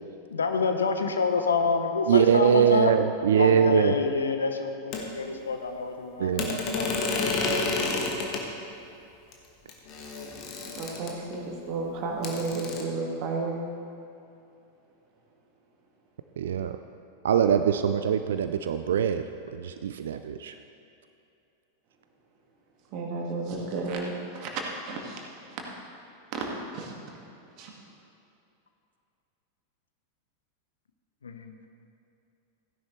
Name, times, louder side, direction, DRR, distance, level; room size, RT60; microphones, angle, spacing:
voice 1, 0.3-2.9 3.3-7.2 31.2-31.5, left 4 dB, 70° left, 6 dB, 0.9 m, -28 dB
voice 2, 2.1-3.9 6.2-6.6 16.4-16.8 17.2-19.2 19.5-20.5, right 8 dB, 60° right, 9 dB, 0.4 m, -23 dB
sound 1, 4.9-5.0 6.4-8.4 9.3-9.4 9.7-11.4 12.2-12.8, left 3 dB, 35° left, 1.6 m, -30 dB
voice 3, 10.8-13.6 22.9-25.6 26.3-26.5 26.7-26.9 27.6-27.7, right 3 dB, 40° right, 0 dB, 1.9 m, -33 dB
15.5 x 10.5 x 3.3 m, 2.7 s
figure-of-eight pair, 90°, 0 cm